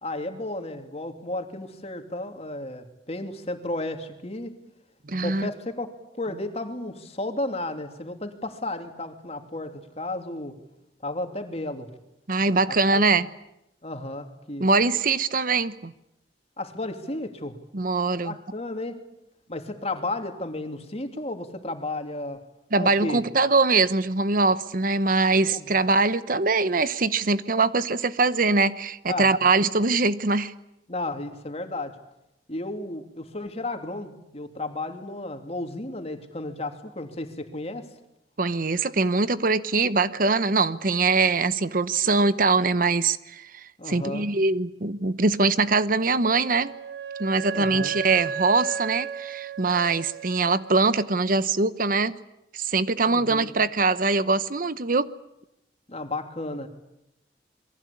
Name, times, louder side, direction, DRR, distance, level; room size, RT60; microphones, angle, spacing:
voice 1, 0.0-4.6 5.2-5.9 6.2-10.5 11.0-11.9 12.7-13.1 13.8-14.7 16.6-17.6 18.2-19.0 19.5-22.4 22.8-23.2 25.5-25.7 29.1-29.3 30.9-32.0 32.5-37.9 43.8-44.3 47.5-48.0 53.1-53.5 55.9-56.7, left 2 dB, 35° left, 2.9 m, -33 dB
voice 2, 5.1-5.5 12.3-13.3 14.6-15.9 17.7-18.3 22.7-30.5 38.4-46.7 47.2-52.1 52.5-55.1, right 3 dB, 50° right, 0.9 m, -23 dB
Wind instrument woodwind instrument, 46.2-50.9, right 7 dB, 75° right, 1.5 m, -34 dB
28.0 x 22.5 x 8.5 m
head